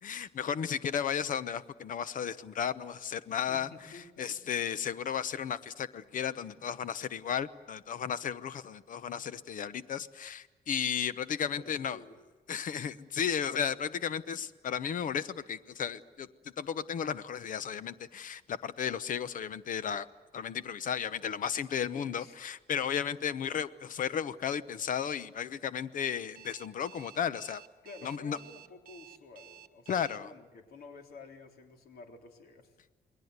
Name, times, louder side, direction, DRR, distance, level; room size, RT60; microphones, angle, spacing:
voice 1, 0.0-3.7 4.2-12.0 12.5-20.1 20.3-27.6 28.0-28.4 29.9-30.3, left 8 dB, 55° left, 14 dB, 0.9 m, -34 dB
voice 2, 3.3-4.3 11.3-12.2 13.5-13.7 14.3-14.5 21.9-22.4 27.8-32.8, left 3 dB, 75° left, 4 dB, 3.6 m, -51 dB
Alarm, 26.3-30.2, right 11 dB, 65° right, 1.3 m, -53 dB
29.0 x 21.0 x 8.1 m, 1.3 s
wide cardioid pair, 160°, 16 cm